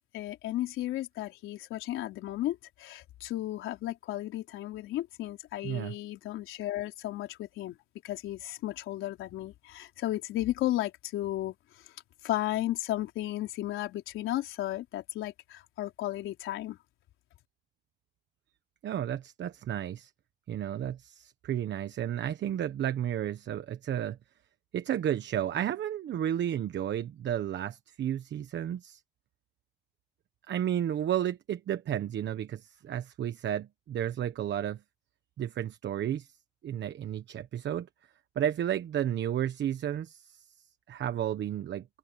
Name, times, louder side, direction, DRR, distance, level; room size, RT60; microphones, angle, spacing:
voice 1, 0.1-7.8 8.0-11.9 12.2-16.8, left 14 dB, 90° left, 4.1 m, -34 dB
voice 2, 5.6-5.9 18.8-20.1 20.5-24.2 24.7-29.0 30.5-34.8 35.4-36.3 36.6-37.9 38.3-40.5 40.9-41.9, right 10 dB, 65° right, 1.2 m, -32 dB
open air
cardioid pair, 90°, 20 cm